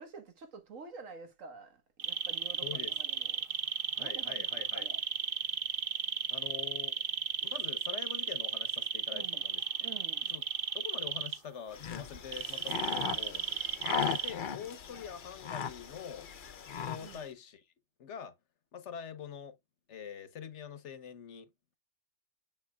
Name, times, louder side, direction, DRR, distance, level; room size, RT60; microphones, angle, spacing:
voice 1, 0.0-3.4 4.0-5.0 5.4-5.5 9.1-9.5 9.8-10.3 12.9-13.4 17.0-17.3, right 4 dB, 90° right, 1.8 m, -49 dB
sound 1, 2.0-11.4 12.3-14.3, right 8 dB, 50° right, 0.8 m, -34 dB
voice 2, 2.6-2.9 4.0-4.9 6.3-6.9 7.4-9.6 10.3-10.4 10.7-13.4 13.8-16.3 16.8-17.6 18.0-18.3 18.7-19.6 19.9-21.5, left 8 dB, 65° left, 1.2 m, -45 dB
sound 2, 11.7-17.3, left 7 dB, 45° left, 0.8 m, -38 dB
7.3 x 5.6 x 2.3 m
omnidirectional pair, 1.3 m